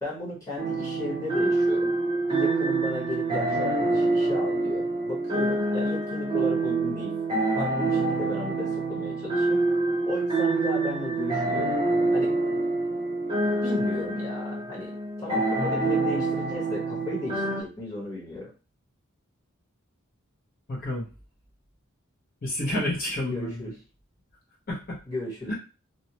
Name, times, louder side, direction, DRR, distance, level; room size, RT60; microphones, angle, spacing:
voice 1, 0.0-2.0 2.3-7.1 7.5-9.6 10.0-11.7 12.1-12.3 13.6-18.5 23.3-23.8 25.1-25.5, left 2 dB, 15° left, -6 dB, 1.1 m, -35 dB
sound 1, 0.6-17.6, right 2 dB, 20° right, 0.7 m, -26 dB
voice 2, 20.7-21.1 22.4-23.7 24.7-25.0 25.5-25.6, left 1 dB, 45° left, -4 dB, 0.8 m, -30 dB
2.6 x 2.1 x 2.8 m, 0.33 s
head